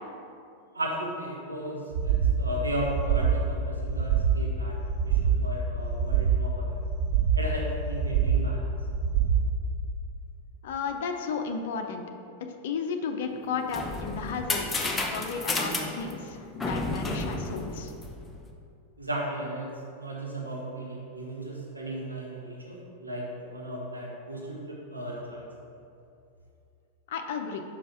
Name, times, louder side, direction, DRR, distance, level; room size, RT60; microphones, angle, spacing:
voice 1, 0.7-4.7 5.1-6.7 7.3-8.6 19.0-25.4, right 1 dB, 80° right, -3 dB, 1.0 m, -35 dB
sound 1, 1.9-2.4 2.8-3.4 3.8-4.4 4.8-5.4 5.8-6.4 6.9-7.5 7.9-8.5 8.9-9.5, right 8 dB, 55° right, 0.6 m, -25 dB
voice 2, 10.6-12.0 12.6-17.9 27.1-27.6, left 5 dB, 55° left, 5 dB, 0.6 m, -33 dB
sound 2, 13.4-18.4, left 2 dB, 15° left, 0.7 m, -32 dB
5.4 x 5.1 x 5.6 m, 2.5 s
figure-of-eight pair, 90°, 0 cm